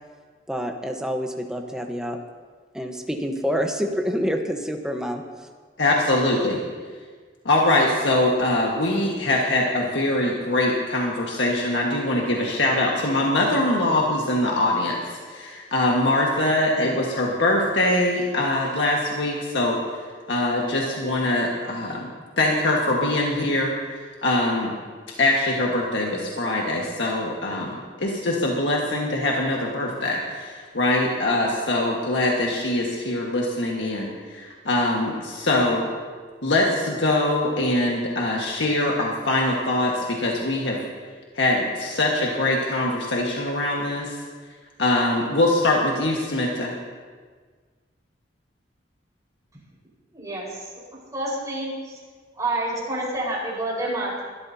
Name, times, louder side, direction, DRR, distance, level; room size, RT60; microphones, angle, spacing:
voice 1, 0.5-2.2 2.7-5.5, equal, 5° right, 3 dB, 1.1 m, -27 dB
voice 2, 5.8-6.6 7.4-19.8 20.3-22.1 22.4-24.7 25.2-35.9 36.4-40.8 41.3-44.2 44.8-46.7, left 1 dB, 85° left, -2 dB, 1.6 m, -23 dB
voice 3, 50.1-50.6 51.1-52.0 52.4-54.2, right 1 dB, 20° right, -6 dB, 4.9 m, -28 dB
21.5 x 13.0 x 2.8 m, 1.5 s
head